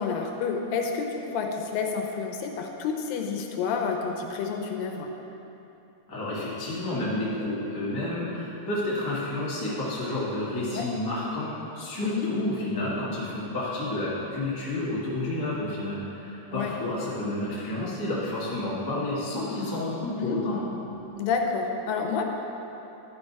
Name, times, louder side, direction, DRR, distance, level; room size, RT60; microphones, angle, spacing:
voice 1, 0.0-5.1 10.7-10.9 12.0-12.3 16.5-16.7 20.2-20.4 21.2-22.3, left 5 dB, 85° left, 2 dB, 2.4 m, -29 dB
voice 2, 6.1-20.6, left 1 dB, 20° left, -9 dB, 0.6 m, -30 dB
11.0 x 5.4 x 4.7 m, 3.0 s
omnidirectional pair, 3.9 m